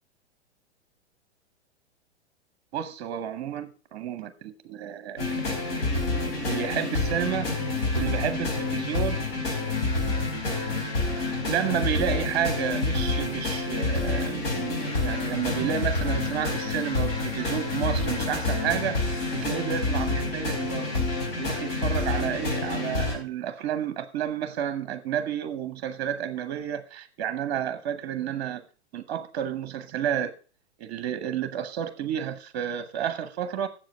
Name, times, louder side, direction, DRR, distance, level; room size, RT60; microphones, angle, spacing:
voice 1, 2.7-5.6 6.4-7.5 7.9-9.2 9.5-9.6 11.5-21.0 21.4-28.6 28.9-30.3 30.8-33.7, right 9 dB, 40° right, 0.8 m, -31 dB
sound 1, 5.2-23.2, left 3 dB, 60° left, 4.2 m, -28 dB
7.7 x 7.3 x 6.6 m
figure-of-eight pair, 105°, 33 cm